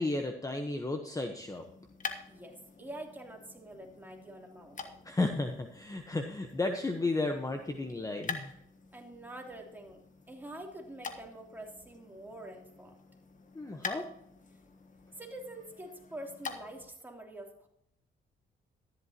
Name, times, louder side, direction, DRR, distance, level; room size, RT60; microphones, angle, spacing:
voice 1, 0.0-1.6 5.0-8.5 13.5-14.1, left 2 dB, 15° left, 5 dB, 1.1 m, -33 dB
sound 1, 1.3-17.0, left 5 dB, 40° left, 1.4 m, -47 dB
voice 2, 2.3-5.0 8.9-13.0 15.2-17.7, right 1 dB, 10° right, 0 dB, 3.2 m, -46 dB
13.5 x 11.5 x 2.9 m, 0.73 s
cardioid pair, 90°, 20 cm